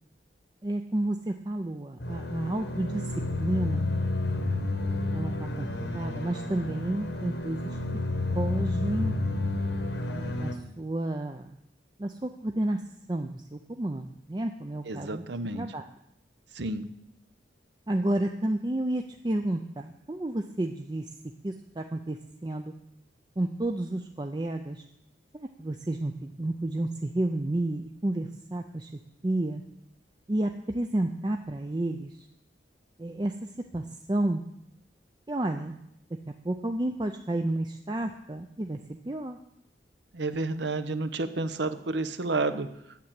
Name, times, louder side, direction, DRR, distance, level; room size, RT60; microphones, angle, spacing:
voice 1, 0.6-3.1 3.4-3.9 5.1-5.7 5.9-7.8 8.3-9.2 10.1-11.6 12.0-12.8 13.1-15.2 15.5-15.8 17.9-21.1 21.4-22.7 23.4-24.8 25.3-28.9 29.2-29.6 30.3-32.3 33.0-34.4 35.3-35.8 36.4-39.4, right 1 dB, 25° right, 5 dB, 0.5 m, -31 dB
sound 1, 2.0-10.5, left 2 dB, 75° left, 1.5 m, -30 dB
voice 2, 14.9-15.6 16.5-16.9 40.1-42.7, right 3 dB, 75° right, 11 dB, 0.8 m, -30 dB
9.5 x 7.2 x 8.8 m, 0.79 s
head